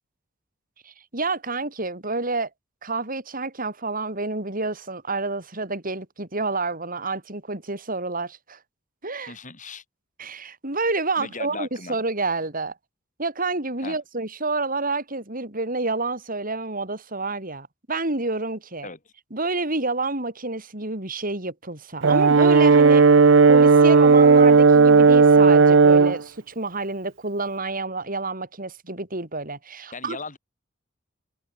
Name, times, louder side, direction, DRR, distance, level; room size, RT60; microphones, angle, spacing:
voice 1, 0.8-2.5 2.8-8.6 9.0-9.3 10.2-12.7 13.2-18.9 19.3-23.1 23.5-30.2, right 3 dB, 45° right, 6.4 m, -29 dB
voice 2, 9.2-9.8 11.2-12.0 13.8-14.0 18.8-19.1 29.9-30.4, left 4 dB, 40° left, 6.4 m, -37 dB
Brass instrument, 22.0-26.2, right 4 dB, 70° right, 0.7 m, -14 dB
head